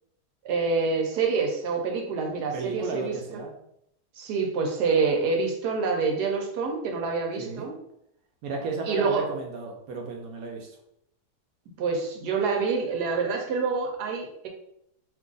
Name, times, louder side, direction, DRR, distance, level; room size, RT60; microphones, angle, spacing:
voice 1, 0.4-3.4 4.2-7.8 8.8-9.3 11.8-14.5, right 4 dB, 85° right, 2 dB, 1.3 m, -27 dB
voice 2, 2.5-3.5 7.4-7.7 8.4-10.7, right 3 dB, 70° right, 1 dB, 1.0 m, -34 dB
2.9 x 2.5 x 3.8 m, 0.77 s
omnidirectional pair, 1.7 m